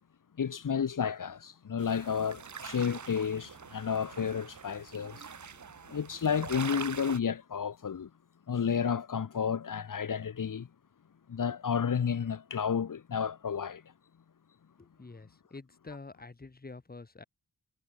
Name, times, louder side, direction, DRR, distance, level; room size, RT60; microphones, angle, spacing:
voice 1, 0.4-5.3 5.9-8.1 8.5-10.7 11.3-13.8, left 7 dB, 65° left, 1.4 m, -31 dB
sound 1, 1.8-7.2, right 6 dB, 60° right, 1.6 m, -44 dB
voice 2, 14.8-17.2, left 3 dB, 25° left, 1.8 m, -47 dB
wide cardioid pair, 85°, 34 cm